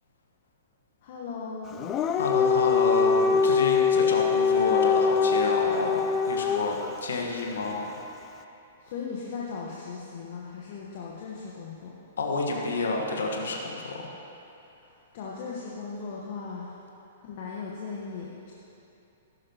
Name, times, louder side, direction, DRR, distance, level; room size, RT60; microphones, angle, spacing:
voice 1, 1.0-1.8 8.8-12.0 14.8-16.8 17.2-18.5, left 5 dB, 50° left, -4 dB, 1.2 m, -38 dB
Dog, 1.7-6.9, left 6 dB, 25° left, 0.5 m, -23 dB
voice 2, 2.1-8.0 12.2-14.1, left 3 dB, 65° left, 0 dB, 1.4 m, -29 dB
14.5 x 11.5 x 3.0 m, 2.9 s
figure-of-eight pair, 110°, 0 cm